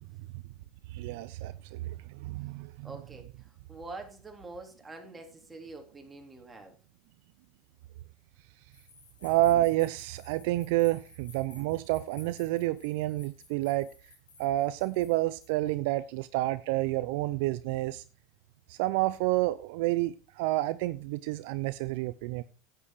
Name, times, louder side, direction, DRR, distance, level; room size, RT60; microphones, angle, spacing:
voice 1, 0.9-2.9 9.2-13.9 14.4-18.0 18.7-22.4, right 17 dB, 65° right, 0.6 m, -29 dB
voice 2, 2.8-6.8, right 2 dB, 15° right, 3.4 m, -46 dB
sound 1, 8.7-15.7, left 3 dB, 90° left, 4.5 m, -56 dB
9.7 x 9.0 x 4.8 m
hypercardioid pair, 85°, 0 cm